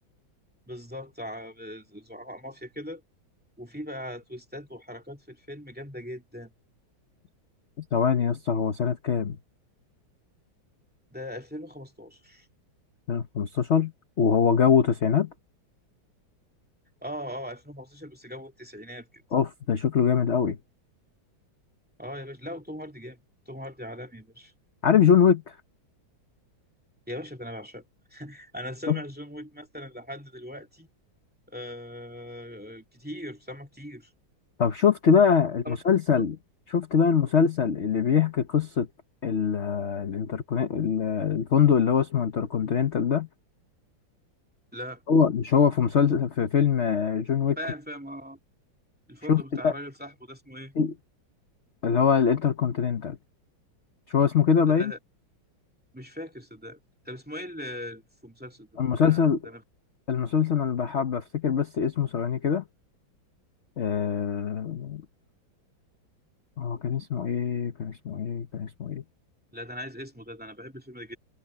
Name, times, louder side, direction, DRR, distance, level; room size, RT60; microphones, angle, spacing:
voice 1, 0.7-3.0 3.6-6.5 11.1-12.5 17.0-19.2 22.0-23.2 23.5-24.5 27.1-27.8 28.1-30.9 31.5-34.1 35.6-35.8 36.2-36.3 44.7-45.0 47.6-48.4 49.1-50.7 54.7-55.0 55.9-56.8 57.1-58.7 59.0-59.6 69.5-71.2, equal, 5° right, 2.3 m, -40 dB
voice 2, 7.9-9.4 13.1-13.9 14.2-15.3 19.3-20.6 24.8-25.5 28.9-29.0 34.6-36.4 36.7-38.9 39.2-43.3 45.1-47.6 49.3-49.7 50.8-50.9 51.8-53.2 54.1-54.9 58.8-59.4 60.1-62.6 63.8-65.0 66.6-69.0, left 7 dB, 45° left, 1.0 m, -23 dB
omnidirectional pair, 2.2 m